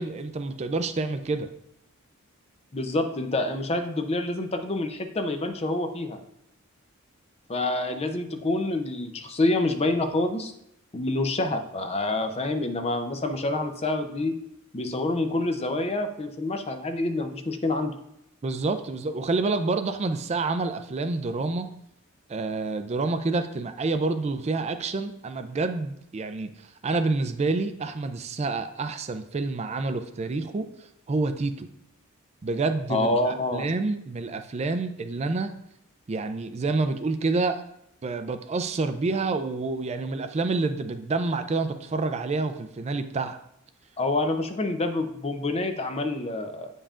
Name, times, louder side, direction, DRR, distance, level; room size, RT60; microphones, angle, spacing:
voice 1, 0.0-1.5 18.4-21.7 22.3-31.7 32.4-35.5 36.1-37.6 38.0-43.4, right 3 dB, 30° right, 8 dB, 0.4 m, -28 dB
voice 2, 2.7-6.2 7.5-10.5 10.9-14.3 14.7-17.9 32.9-33.7 44.0-46.7, left 2 dB, 30° left, 6 dB, 0.6 m, -27 dB
8.4 x 5.4 x 2.5 m, 0.78 s
head